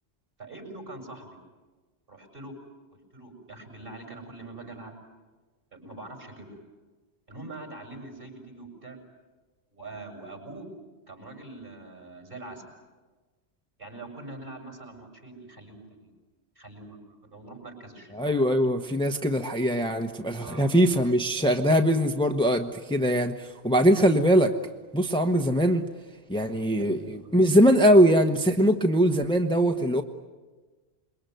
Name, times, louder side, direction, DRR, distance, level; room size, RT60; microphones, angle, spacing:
voice 1, 0.4-1.4 2.1-2.6 2.9-4.9 5.7-6.6 7.3-9.0 9.7-10.7 11.1-12.6 13.8-16.1 16.5-18.3 18.7-18.8 20.4-20.7 26.7-27.1, right 2 dB, 55° right, 3 dB, 6.7 m, -43 dB
voice 2, 18.1-24.5 24.9-25.8 26.3-30.0, equal, 5° left, 4 dB, 1.2 m, -22 dB
28.5 x 22.5 x 9.4 m, 1.2 s
omnidirectional pair, 1.1 m